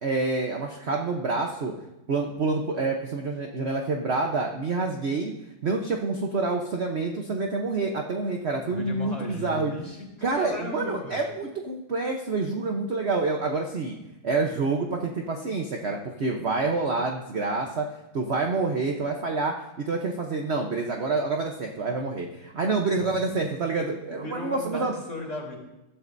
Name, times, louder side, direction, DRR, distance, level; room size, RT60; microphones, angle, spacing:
voice 1, 0.0-1.7 2.1-5.3 5.6-9.7 10.2-14.0 14.2-17.9 18.1-24.9, right 3 dB, 50° right, 2 dB, 0.8 m, -27 dB
voice 2, 8.6-11.2 23.0-23.1 24.2-25.6, left 1 dB, 15° left, -4 dB, 3.9 m, -36 dB
21.5 x 13.0 x 2.7 m, 0.97 s
omnidirectional pair, 2.3 m